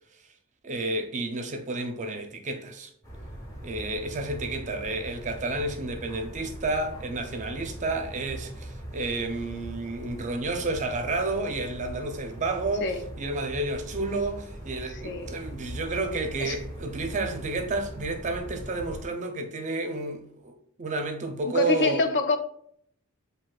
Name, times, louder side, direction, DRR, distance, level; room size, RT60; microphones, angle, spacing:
voice 1, 0.6-2.9 3.6-12.9 13.2-22.1, right 2 dB, 35° right, 0.5 m, -31 dB
sound 1, 3.0-19.0, right 1 dB, 15° left, 1.0 m, -41 dB
voice 2, 14.9-15.3 16.4-16.6 21.5-22.4, left 3 dB, 50° left, 0.5 m, -26 dB
7.4 x 2.7 x 2.3 m
head